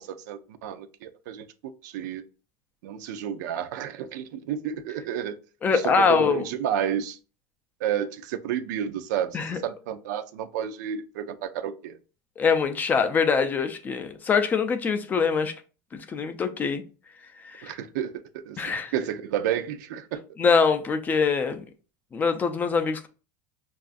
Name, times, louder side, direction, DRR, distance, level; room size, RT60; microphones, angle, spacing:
voice 1, 0.0-2.2 2.8-5.4 5.7-7.2 7.8-12.0 17.6-18.6 18.9-20.2, right 9 dB, 85° right, 0.4 m, -31 dB
voice 2, 5.6-6.5 9.3-9.6 12.4-15.5 16.1-16.8 17.4-17.7 18.6-18.9 20.4-21.6 22.1-23.1, left 5 dB, 20° left, 0.3 m, -23 dB
5.5 x 2.4 x 2.5 m
supercardioid pair, 155°, 10 cm